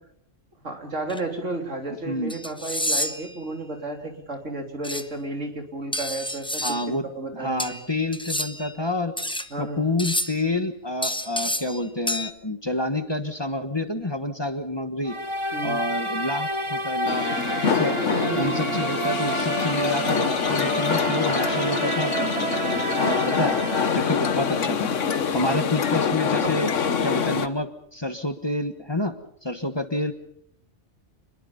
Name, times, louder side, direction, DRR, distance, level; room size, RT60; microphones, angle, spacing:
voice 1, 0.6-7.8 9.5-9.9 15.5-15.8 18.0-18.7, right 2 dB, 80° right, 3 dB, 3.8 m, -33 dB
sound 1, 1.1-1.2 2.3-3.3 4.8-5.0 5.9-6.9 7.6-8.7 9.2-9.5 10.0-10.5 11.0-11.8 12.1-12.3, left 1 dB, 5° left, 0.7 m, -29 dB
voice 2, 6.6-7.1 7.3-9.1 9.6-15.1 15.6-17.3 17.6-18.0 18.3-22.6 23.0-23.6 23.9-24.9 25.3-26.7 27.0-29.1 29.4-30.1, left 1 dB, 20° left, 8 dB, 1.4 m, -28 dB
sound 2, 15.1-25.0, right 2 dB, 25° right, 0.9 m, -29 dB
sound 3, 17.0-27.5, left 6 dB, 85° left, 1.5 m, -25 dB
27.5 x 22.0 x 5.4 m, 0.68 s
omnidirectional pair, 1.2 m